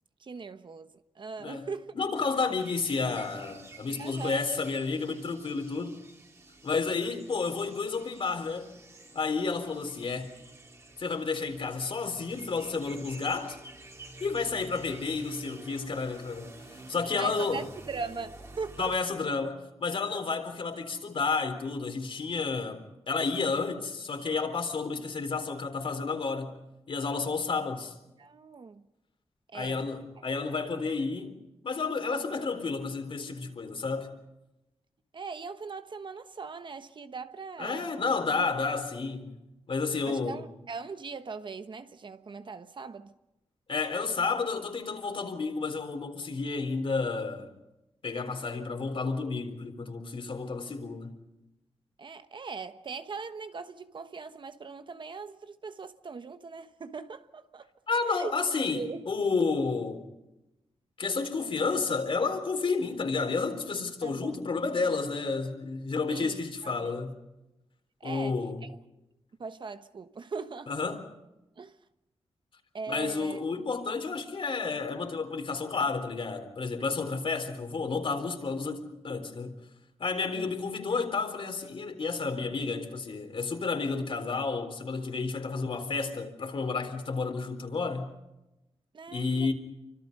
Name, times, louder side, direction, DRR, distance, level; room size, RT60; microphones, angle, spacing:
voice 1, 0.2-1.9 2.4-2.5 4.0-4.4 17.2-19.0 28.2-28.8 29.5-29.9 35.1-38.0 40.0-43.1 52.0-57.7 58.0-58.3 58.7-59.1 64.0-64.3 66.1-67.0 68.0-68.7 69.4-70.7 71.6-71.8 72.7-73.4 80.3-80.5 88.9-89.5, right 4 dB, 45° right, 1.1 m, -40 dB
voice 2, 1.9-6.0 6.6-8.7 9.1-10.3 11.0-13.6 14.2-17.7 18.8-26.5 26.9-27.9 29.5-31.4 31.6-34.1 37.6-39.3 39.7-40.4 43.7-47.5 48.0-51.1 57.9-60.1 61.0-67.1 68.0-68.6 70.7-71.0 72.9-79.5 80.0-88.1 89.1-89.5, left 4 dB, 55° left, 3.9 m, -31 dB
sound 1, 2.1-19.0, right 1 dB, 25° right, 3.4 m, -49 dB
29.5 x 25.5 x 5.4 m
wide cardioid pair, 130°, 11 cm